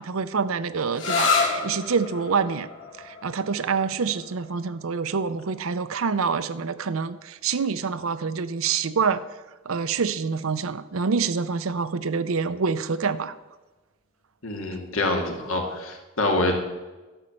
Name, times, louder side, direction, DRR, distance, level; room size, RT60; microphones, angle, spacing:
voice 1, 0.0-2.7 3.0-9.2 9.7-13.3, right 5 dB, 85° right, 14 dB, 0.6 m, -26 dB
sound 1, 0.9-8.3, left 4 dB, 60° left, 2.5 m, -31 dB
voice 2, 14.4-16.6, left 2 dB, 85° left, 2 dB, 2.1 m, -26 dB
12.0 x 5.5 x 7.6 m, 1.2 s
head